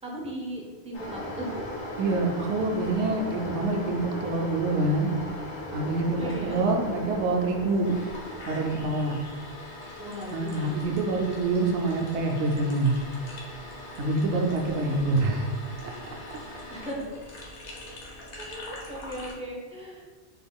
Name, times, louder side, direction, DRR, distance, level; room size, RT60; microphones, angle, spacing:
voice 1, 0.0-1.8 5.7-5.9 6.2-6.7 10.0-11.0 14.7-15.2 16.7-17.2 18.2-20.1, equal, 10° right, -2 dB, 0.4 m, -38 dB
sound 1, 0.9-19.3, left 1 dB, 85° left, 1.1 m, -39 dB
voice 2, 2.0-5.2 5.7-7.9 8.4-9.2 10.3-13.0 14.0-15.5 15.8-15.9, right 2 dB, 85° right, 1 dB, 0.9 m, -26 dB
4.1 x 3.5 x 2.3 m, 1.3 s
omnidirectional pair, 1.1 m